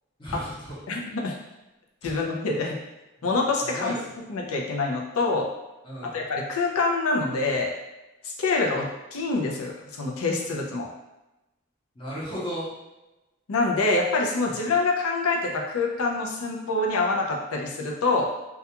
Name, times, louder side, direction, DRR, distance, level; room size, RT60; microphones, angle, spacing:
voice 1, 0.2-0.8 2.0-2.2 3.6-3.9 5.8-6.2 12.0-12.7, equal, 25° left, -8 dB, 0.7 m, -34 dB
voice 2, 0.9-1.4 2.0-2.8 3.2-3.9 4.3-5.5 6.1-7.7 8.2-10.9 13.5-18.3, left 3 dB, 75° left, 0 dB, 0.5 m, -26 dB
2.3 x 2.3 x 2.8 m, 0.99 s
head